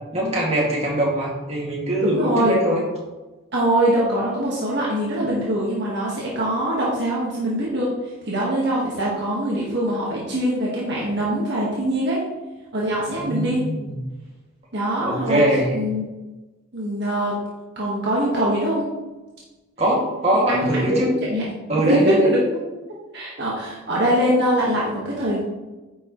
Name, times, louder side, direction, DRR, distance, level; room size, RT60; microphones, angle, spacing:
voice 1, 0.1-2.8 13.1-14.0 15.0-15.8 19.8-21.1 21.7-22.3, equal, 30° right, -4 dB, 2.3 m, -22 dB
voice 2, 2.0-2.5 3.5-7.9 8.3-12.2 12.7-13.6 14.7-15.4 15.7-16.1 16.7-17.3 17.7-18.8 20.5-21.4 21.9-22.4 23.1-25.4, right 1 dB, 50° right, -5 dB, 1.6 m, -23 dB
9.8 x 6.3 x 3.2 m, 1.1 s
head